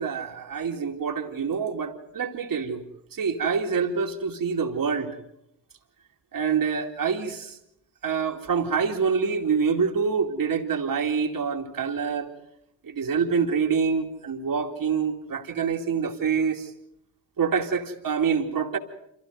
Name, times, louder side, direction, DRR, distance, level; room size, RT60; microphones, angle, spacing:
voice 1, 0.0-2.8 3.1-5.1 6.3-7.6 8.0-12.3 12.8-16.7 17.4-18.8, right 6 dB, 45° right, 4 dB, 2.4 m, -26 dB
26.0 x 15.5 x 7.9 m, 0.81 s
hypercardioid pair, 45°, 45 cm